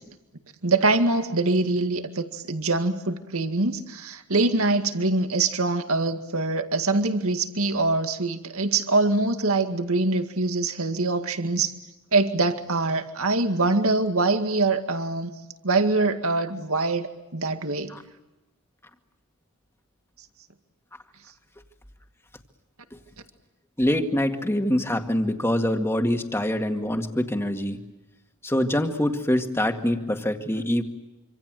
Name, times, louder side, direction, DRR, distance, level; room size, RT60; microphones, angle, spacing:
voice 1, 0.6-11.7 12.1-15.3 15.6-17.9, right 3 dB, 75° right, 7 dB, 2.0 m, -24 dB
voice 2, 23.8-27.8 28.4-30.8, left 1 dB, 10° left, 5 dB, 2.1 m, -24 dB
26.5 x 26.0 x 7.7 m, 1.0 s
head